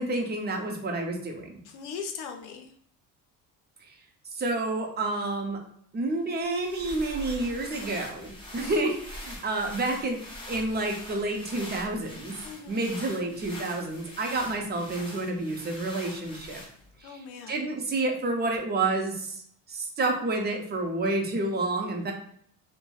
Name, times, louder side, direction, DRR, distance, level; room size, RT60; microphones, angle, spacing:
voice 1, 0.0-1.6 3.8-3.9 4.3-5.6 5.9-12.3 12.7-16.6 17.0-17.2 17.5-19.4 19.7-22.1, right 2 dB, 25° right, 2 dB, 0.6 m, -29 dB
voice 2, 1.6-2.7 8.5-8.9 12.4-12.8 17.0-17.7, left 6 dB, 75° left, 4 dB, 0.6 m, -40 dB
sound 1, 6.3-17.0, left 1 dB, 15° left, 0.7 m, -43 dB
3.0 x 2.1 x 2.3 m, 0.64 s
supercardioid pair, 85°, 40 cm